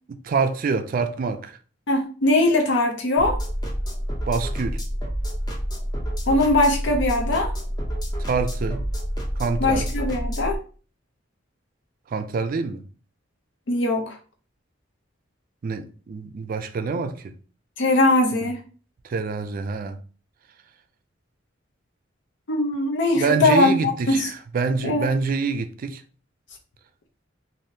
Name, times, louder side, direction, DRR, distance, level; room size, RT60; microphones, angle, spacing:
voice 1, 0.1-1.6 4.3-4.8 8.2-8.8 9.4-9.9 12.1-12.8 15.6-17.3 18.4-18.5 19.0-20.0 23.2-26.0, right 4 dB, 45° right, 0.3 m, -26 dB
voice 2, 1.9-3.4 6.3-7.5 9.6-10.6 13.7-14.2 17.8-18.6 22.5-24.3 24.8-25.1, left 2 dB, 65° left, 0.6 m, -21 dB
sound 1, 3.2-10.5, equal, 20° left, 0.7 m, -28 dB
3.4 x 2.6 x 2.6 m
head